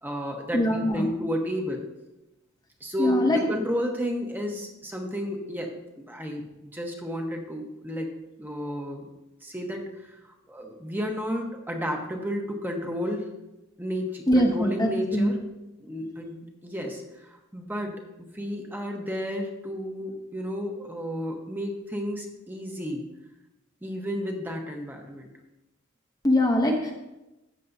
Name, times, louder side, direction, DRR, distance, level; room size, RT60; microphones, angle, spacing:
voice 1, 0.0-1.8 2.8-8.1 8.4-9.1 9.4-13.3 13.8-15.4 15.8-23.0 23.8-25.3, equal, 10° right, 2 dB, 1.1 m, -32 dB
voice 2, 0.5-1.1 3.0-3.4 14.3-15.3 26.2-26.9, left 1 dB, 20° left, 1 dB, 0.8 m, -22 dB
13.5 x 8.3 x 2.7 m, 0.98 s
head